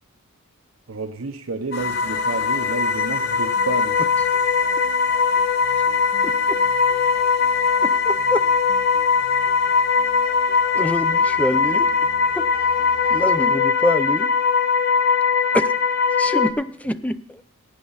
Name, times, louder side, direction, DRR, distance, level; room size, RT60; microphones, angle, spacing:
voice 1, 0.9-4.0, right 3 dB, 70° right, 6 dB, 0.8 m, -30 dB
sound 1, 1.7-16.5, left 5 dB, 50° left, 0.7 m, -20 dB
sound 2, 1.7-13.3, equal, 25° left, 1.7 m, -45 dB
voice 2, 6.2-6.6 7.8-8.4 10.7-11.9 12.4-12.5 13.1-14.3 15.5-15.7 16.2-17.4, left 1 dB, 5° left, 12 dB, 0.4 m, -25 dB
17.0 x 8.5 x 4.0 m, 0.64 s
head